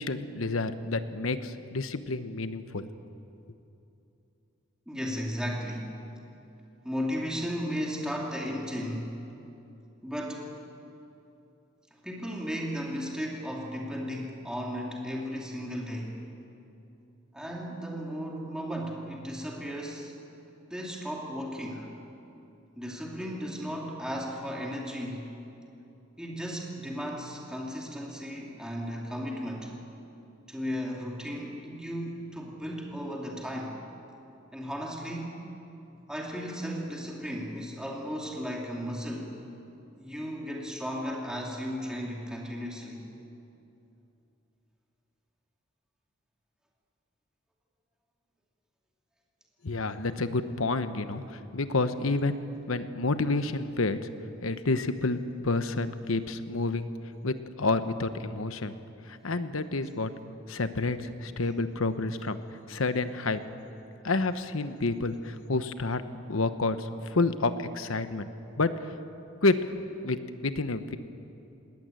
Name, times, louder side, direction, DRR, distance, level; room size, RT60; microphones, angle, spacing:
voice 1, 0.0-2.9 49.6-52.4 52.7-54.0 54.4-56.9 57.2-58.7 59.1-60.1 60.5-62.4 62.7-63.4 64.0-66.0 66.3-68.3 68.6-68.7 69.4-69.6 70.0-71.0, left 3 dB, 80° left, 11 dB, 1.1 m, -29 dB
voice 2, 4.9-6.0 6.8-9.1 10.0-10.5 12.0-16.2 17.3-20.1 20.7-21.9 22.8-25.3 26.2-29.7 30.5-33.8 34.5-35.4 36.1-39.3 40.0-43.0, equal, 5° right, -2 dB, 2.7 m, -35 dB
20.5 x 18.5 x 9.1 m, 2.8 s
head